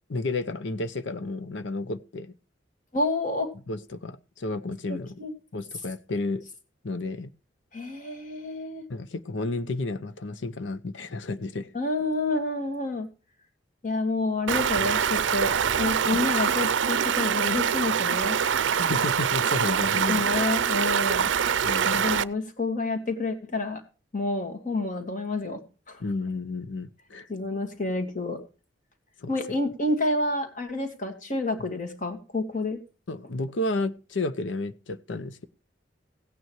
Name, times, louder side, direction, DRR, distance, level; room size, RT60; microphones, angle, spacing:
voice 1, 0.1-2.3 3.7-5.2 5.5-6.4 6.8-7.3 8.9-11.7 16.1-16.2 18.7-20.2 21.6-22.0 26.0-27.3 29.2-29.3 33.1-35.5, left 2 dB, 85° left, 0.8 m, -32 dB
voice 2, 2.9-3.5 4.9-5.3 7.7-8.8 11.7-13.1 13.8-18.4 20.1-21.3 21.8-23.8 24.1-25.6 25.9-26.0 27.3-28.4 29.3-32.8, left 2 dB, 45° left, 2.2 m, -29 dB
Stream, 14.5-22.2, right 7 dB, 85° right, 0.5 m, -24 dB
16.5 x 9.3 x 3.1 m
head